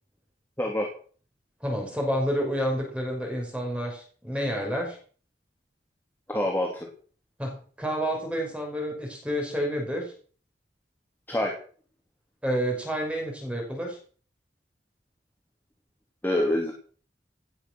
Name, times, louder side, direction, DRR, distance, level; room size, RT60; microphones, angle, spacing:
voice 1, 0.6-0.9 6.3-6.9 11.3-11.5 16.2-16.7, left 1 dB, 10° left, 0 dB, 3.1 m, -26 dB
voice 2, 1.6-5.0 7.4-10.1 12.4-14.0, equal, 5° right, 0 dB, 5.7 m, -29 dB
18.0 x 9.9 x 6.2 m, 0.44 s
head